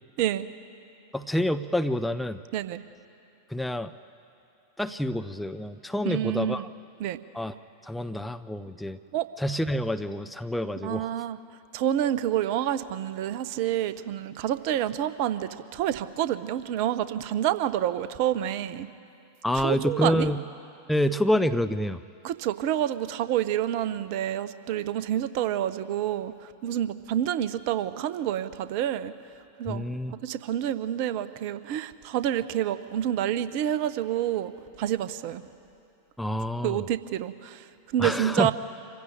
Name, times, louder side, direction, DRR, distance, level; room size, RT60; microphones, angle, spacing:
voice 1, 1.1-2.4 3.5-3.9 4.8-6.7 7.3-7.5 7.8-9.0 9.4-11.1 19.4-20.4 20.9-22.0 29.7-30.1 36.2-36.8 38.0-38.5, left 1 dB, 5° left, 9 dB, 0.6 m, -27 dB
voice 2, 2.5-2.8 6.0-6.7 7.0-7.2 9.1-9.3 10.8-11.4 11.7-18.9 19.5-20.3 22.2-29.1 29.6-34.5 34.8-35.4 36.6-38.5, right 11 dB, 45° right, 14 dB, 0.8 m, -28 dB
25.5 x 15.5 x 9.0 m, 2.6 s
figure-of-eight pair, 90°, 0 cm